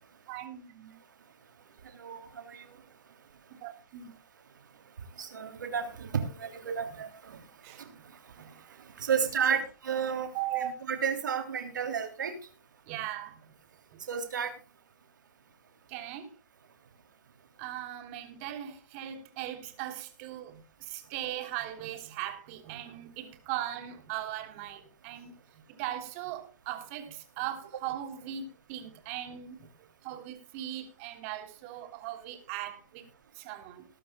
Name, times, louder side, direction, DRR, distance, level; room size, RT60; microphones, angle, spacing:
voice 1, 0.3-0.9 3.6-4.1 7.6-7.9 8.3-9.1 10.3-10.7 12.9-13.5 13.9-14.0 15.9-16.3 17.6-25.4 25.7-29.7 30.0-33.0 33.3-33.8, right 12 dB, 45° right, 3.3 m, -39 dB
voice 2, 1.9-2.7 5.2-7.4 7.8-7.9 9.0-12.3 14.1-14.5, right 7 dB, 75° right, 3.1 m, -32 dB
20.5 x 12.0 x 2.3 m
hypercardioid pair, 120°, 10 cm